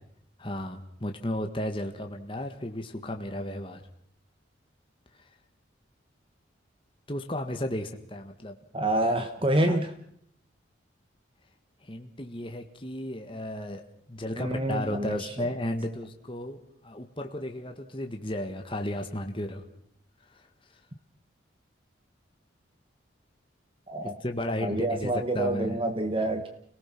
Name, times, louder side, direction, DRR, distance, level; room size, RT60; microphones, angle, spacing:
voice 1, 0.4-3.8 5.2-5.3 7.1-8.6 9.6-9.8 11.8-13.8 14.1-16.6 16.8-19.6 20.3-20.4 24.0-25.8, left 1 dB, 25° left, 4 dB, 1.7 m, -34 dB
voice 2, 8.7-9.9 14.4-15.5 23.9-24.1 24.6-26.5, right 1 dB, 25° right, 7 dB, 1.2 m, -27 dB
30.0 x 18.5 x 6.1 m, 0.68 s
head